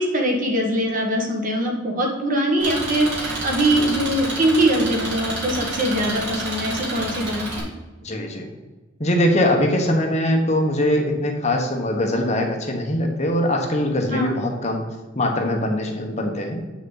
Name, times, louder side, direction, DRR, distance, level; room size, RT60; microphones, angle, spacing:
voice 1, 0.0-7.7 14.1-14.3, right 1 dB, 40° right, 1 dB, 1.6 m, -22 dB
Engine, 2.6-7.6, right 1 dB, 60° right, 2.6 m, -29 dB
voice 2, 8.0-8.5 9.0-14.8 15.2-16.6, left 1 dB, 35° left, 2 dB, 1.1 m, -22 dB
8.3 x 6.3 x 4.0 m, 1.2 s
head